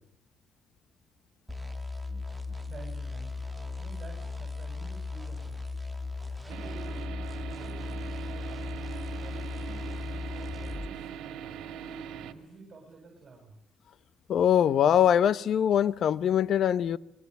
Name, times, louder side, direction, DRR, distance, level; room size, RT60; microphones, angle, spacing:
sound 1, 1.5-10.9, left 3 dB, 5° right, 2.3 m, -37 dB
voice 1, 2.7-3.5 3.8-5.6 6.4-7.1 7.4-8.5 9.1-11.1 11.7-13.6, right 3 dB, 40° right, 7.9 m, -50 dB
sound 2, 6.5-12.3, right 8 dB, 80° right, 2.2 m, -41 dB
voice 2, 14.3-17.0, left 9 dB, 65° left, 0.9 m, -23 dB
27.5 x 21.5 x 8.3 m
cardioid pair, 85°, 0 cm